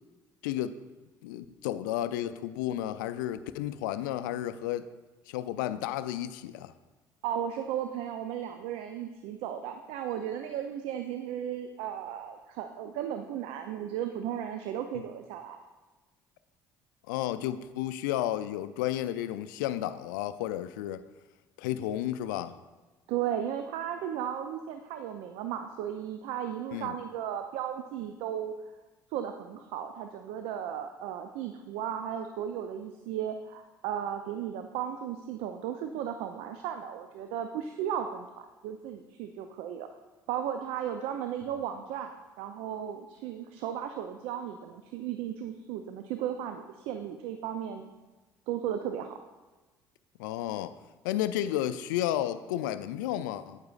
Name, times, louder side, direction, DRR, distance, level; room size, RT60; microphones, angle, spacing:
voice 1, 0.4-0.8 1.2-4.9 5.3-6.7 17.1-21.0 21.6-22.6 26.7-27.0 50.2-50.8 51.0-53.6, left 12 dB, 80° left, 13 dB, 0.4 m, -32 dB
voice 2, 7.2-15.6 23.1-28.5 29.1-39.9 40.3-42.1 42.4-47.8 48.5-49.2, right 9 dB, 70° right, 7 dB, 0.5 m, -35 dB
9.2 x 8.1 x 2.4 m, 1.2 s
hypercardioid pair, 60°, 11 cm